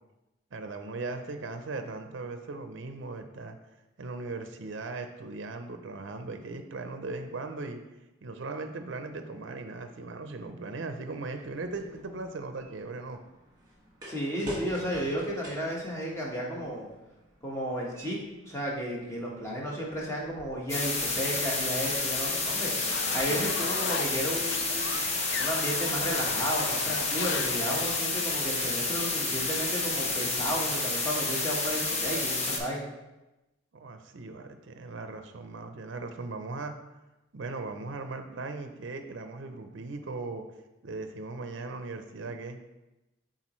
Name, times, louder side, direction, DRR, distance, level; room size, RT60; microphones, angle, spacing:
voice 1, 0.5-3.6 4.0-7.8 8.2-13.2 33.7-36.7 37.3-40.4 40.8-42.6, right 3 dB, 65° right, 7 dB, 0.5 m, -38 dB
sound 1, 11.4-22.3, equal, 20° right, 1.7 m, -47 dB
voice 2, 14.1-16.9 17.4-25.1 25.4-32.9, equal, 15° left, -3 dB, 1.2 m, -33 dB
sound 2, 20.7-32.6, left 3 dB, 35° left, 0.8 m, -30 dB
sound 3, 22.6-28.4, left 5 dB, 55° left, 0.4 m, -37 dB
8.3 x 3.9 x 3.1 m, 1.0 s
head